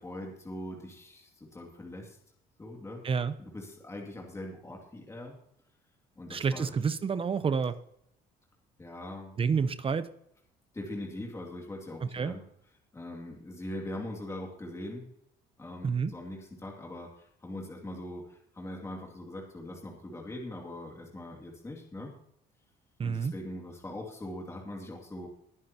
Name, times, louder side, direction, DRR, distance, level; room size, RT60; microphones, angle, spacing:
voice 1, 0.0-2.2 2.6-3.0 3.4-5.3 6.2-6.7 8.8-9.3 10.7-12.4 12.9-15.0 15.6-22.2 23.0-25.3, left 1 dB, 15° left, -1 dB, 2.5 m, -41 dB
voice 2, 6.3-7.7 9.4-10.1 12.1-12.4 15.8-16.1 23.0-23.3, right 6 dB, 35° right, 13 dB, 0.7 m, -29 dB
21.0 x 9.2 x 2.9 m, 0.73 s
cardioid pair, 110°, 17 cm